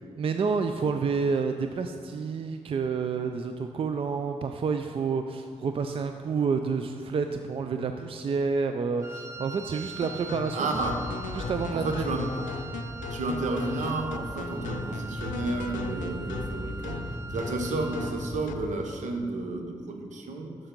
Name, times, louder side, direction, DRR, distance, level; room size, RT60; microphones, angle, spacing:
voice 1, 0.2-10.8 11.3-12.0, right 5 dB, 45° right, 6 dB, 0.4 m, -29 dB
Wind instrument woodwind instrument, 9.0-18.3, right 4 dB, 25° right, 1.3 m, -43 dB
sound 1, 10.0-18.7, left 5 dB, 85° left, 0.4 m, -38 dB
voice 2, 10.5-11.4 11.7-12.4 13.1-20.6, right 2 dB, 70° right, 4 dB, 0.9 m, -32 dB
sound 2, 10.7-18.8, left 1 dB, 5° left, 0.8 m, -40 dB
7.0 x 6.4 x 3.8 m, 2.1 s
supercardioid pair, 50°, 13 cm